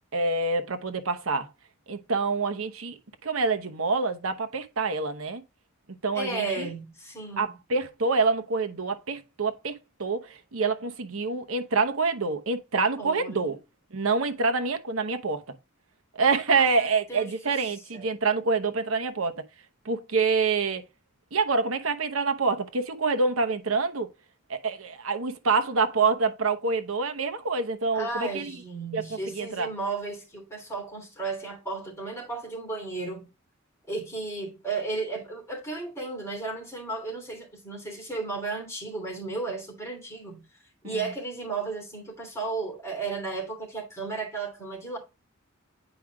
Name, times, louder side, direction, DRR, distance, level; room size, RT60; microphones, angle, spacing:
voice 1, 0.1-1.5 1.9-2.9 3.2-5.4 6.0-6.7 7.4-13.6 13.9-15.4 16.1-19.3 19.8-20.8 21.3-24.1 24.5-28.5 28.9-29.7 40.9-41.0, right 4 dB, 70° right, 0.9 m, -26 dB
voice 2, 6.1-7.5 13.0-13.6 16.5-18.1 27.9-33.3 33.9-40.4 40.8-45.0, right 3 dB, 15° left, 2.9 m, -34 dB
9.0 x 4.9 x 2.3 m
head